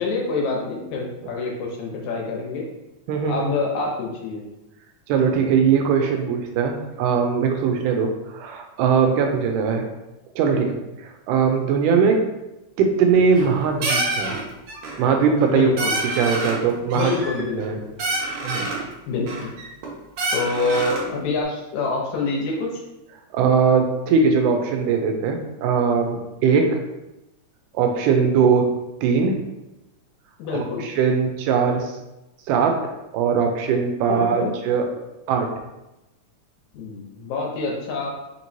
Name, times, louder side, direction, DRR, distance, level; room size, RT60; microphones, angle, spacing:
voice 1, 0.0-2.6 3.3-4.5 15.5-15.9 16.9-17.8 19.1-19.5 20.3-22.8 30.4-30.9 34.1-34.5 36.7-38.1, left 3 dB, 75° left, -2 dB, 2.0 m, -26 dB
voice 2, 3.1-3.5 5.1-9.8 10.4-10.8 11.3-12.2 12.8-14.4 15.0-15.9 16.2-17.1 17.6-17.8 18.4-18.7 23.3-26.8 27.7-28.7 29.0-29.4 30.5-32.0 32.5-32.8 33.1-34.9 35.3-35.5, right 6 dB, 90° right, 4 dB, 2.1 m, -20 dB
sound 1, 13.1-13.5 13.8-14.4 14.7-15.1 15.4-15.5 15.8-16.6 16.9-17.7 18.0-18.8 19.3-19.9 20.2-21.1, right 2 dB, 70° right, 2.0 m, -27 dB
5.0 x 3.0 x 2.7 m, 0.96 s
omnidirectional pair, 3.6 m